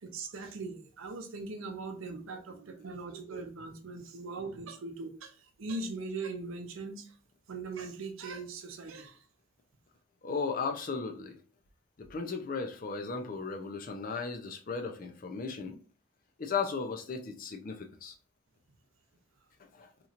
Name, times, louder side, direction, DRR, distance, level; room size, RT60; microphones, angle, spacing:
voice 1, 0.0-7.1 7.5-9.2, right 3 dB, 70° right, 0.5 m, -40 dB
voice 2, 10.2-11.4 12.0-15.8 16.4-18.1 19.7-19.9, left 5 dB, 40° left, 0.4 m, -36 dB
2.9 x 2.8 x 2.4 m
head